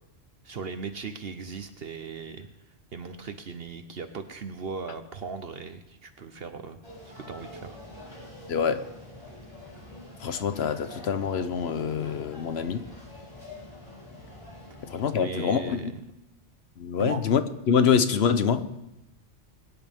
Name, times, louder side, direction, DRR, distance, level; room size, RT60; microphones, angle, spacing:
voice 1, 0.4-2.5 2.9-6.8 7.3-7.8 15.2-16.0 17.0-17.2, right 5 dB, 55° right, 1.0 m, -38 dB
sound 1, 6.8-15.2, left 1 dB, 30° left, 4.3 m, -45 dB
voice 2, 8.5-8.9 10.2-12.8 14.9-15.9 16.8-17.4 17.7-18.7, left 7 dB, 60° left, 1.0 m, -25 dB
22.5 x 10.0 x 3.6 m
omnidirectional pair, 1.2 m